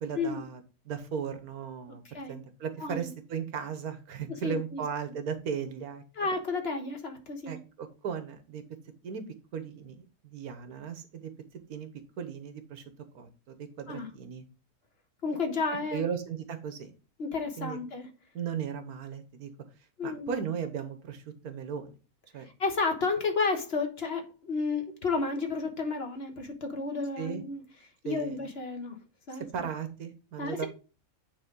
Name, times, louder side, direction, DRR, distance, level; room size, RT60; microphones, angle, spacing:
voice 1, 0.0-6.3 7.5-8.6 9.0-9.2 9.5-11.3 11.7-11.9 12.2-12.8 13.1-14.4 15.9-16.9 17.6-17.8 18.3-19.5 20.0-21.9 22.3-22.5 27.2-27.4 28.0-28.4 29.3-30.7, right 7 dB, 85° right, 1.5 m, -36 dB
voice 2, 2.8-3.1 4.3-4.8 6.2-7.6 13.9-14.1 15.2-16.0 17.2-18.1 20.0-20.4 22.6-27.6 28.0-28.9 29.3-29.5 30.4-30.7, left 4 dB, 45° left, 1.4 m, -32 dB
9.4 x 4.1 x 3.7 m
omnidirectional pair, 1.5 m